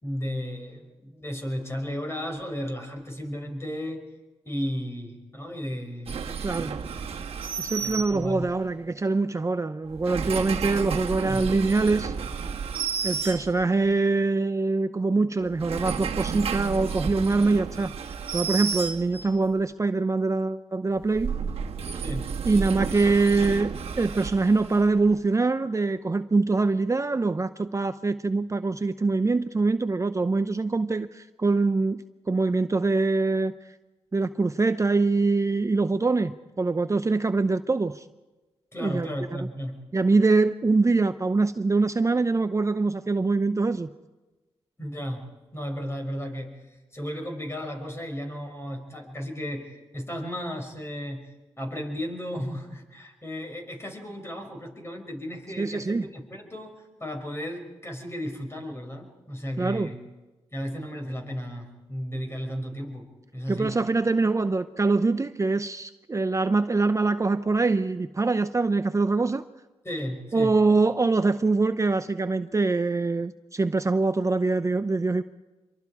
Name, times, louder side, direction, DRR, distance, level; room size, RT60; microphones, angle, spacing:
voice 1, 0.0-4.1 4.4-6.7 7.8-8.5 11.3-11.5 21.9-22.3 38.7-39.8 44.8-60.0 60.5-63.8 69.8-70.6, equal, 25° left, 6.2 m, -34 dB
sound 1, 6.1-8.6 9.9-13.9 15.4-19.5 21.0-25.1, right 6 dB, 65° right, 1.7 m, -32 dB
voice 2, 6.4-6.8 7.6-12.1 13.0-17.9 18.3-21.4 22.4-33.5 34.1-38.1 38.8-39.1 39.9-43.9 55.6-56.1 59.6-59.9 63.5-69.4 70.3-75.2, right 3 dB, 30° right, 0.7 m, -24 dB
26.5 x 23.0 x 4.9 m
supercardioid pair, 50°, 11 cm